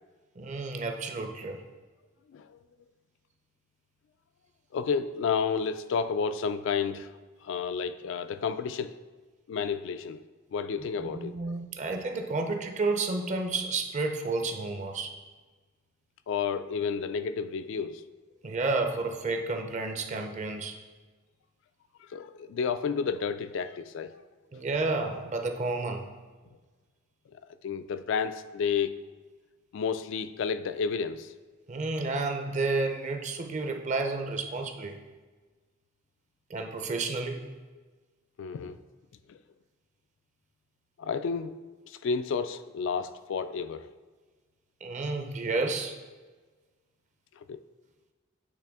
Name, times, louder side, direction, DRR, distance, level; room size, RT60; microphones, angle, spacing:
voice 1, 0.4-1.6 11.0-15.1 18.4-20.8 24.5-26.0 31.7-35.0 36.5-37.4 44.8-46.0, right 3 dB, 35° right, 0.5 m, -31 dB
voice 2, 2.3-2.6 4.7-7.1 7.4-9.0 9.5-10.2 10.5-11.5 16.3-18.0 22.0-24.2 27.3-28.9 29.7-31.3 38.4-38.8 39.3-39.4 41.0-41.5 41.9-43.9 47.4-47.6, left 6 dB, 65° left, 0.3 m, -31 dB
8.4 x 3.3 x 3.5 m
head